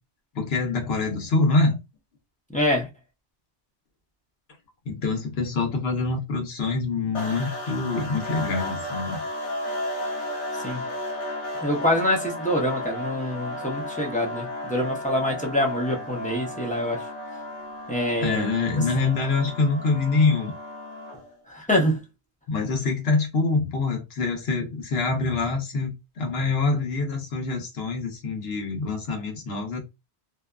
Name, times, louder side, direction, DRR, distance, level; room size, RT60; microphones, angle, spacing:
voice 1, 0.3-1.8 4.9-9.2 18.2-20.5 22.5-25.9 26.2-29.8, left 3 dB, 70° left, 1.0 m, -25 dB
voice 2, 2.5-2.9 10.6-10.8 11.6-17.1 17.9-18.5 21.5-22.0, left 1 dB, 10° left, 0.4 m, -25 dB
sound 1, 7.1-21.3, left 1 dB, 90° left, 1.2 m, -34 dB
2.6 x 2.3 x 2.2 m
omnidirectional pair, 1.1 m